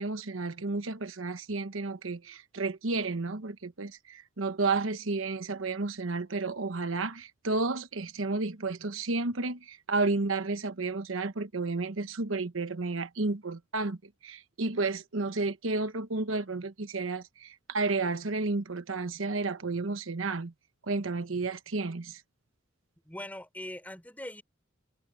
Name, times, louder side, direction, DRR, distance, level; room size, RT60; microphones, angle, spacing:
voice 1, 0.0-20.5 20.8-22.2, right 3 dB, 85° right, 1.1 m, -32 dB
voice 2, 23.1-24.4, left 1 dB, 10° left, 5.2 m, -41 dB
head